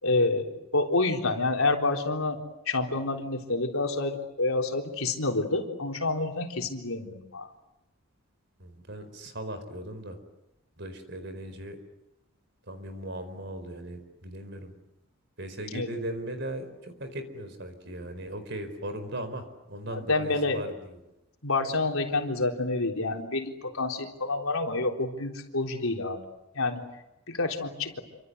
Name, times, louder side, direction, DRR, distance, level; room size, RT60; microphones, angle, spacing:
voice 1, 0.0-2.4 2.7-7.5 15.7-15.9 19.9-20.6 21.4-26.2 26.5-26.8 27.3-28.0, left 3 dB, 75° left, 2 dB, 3.9 m, -28 dB
voice 2, 8.6-10.2 10.8-11.8 12.7-14.7 15.4-20.9, right 1 dB, 55° right, 10 dB, 4.6 m, -38 dB
28.0 x 25.5 x 8.1 m, 0.92 s
head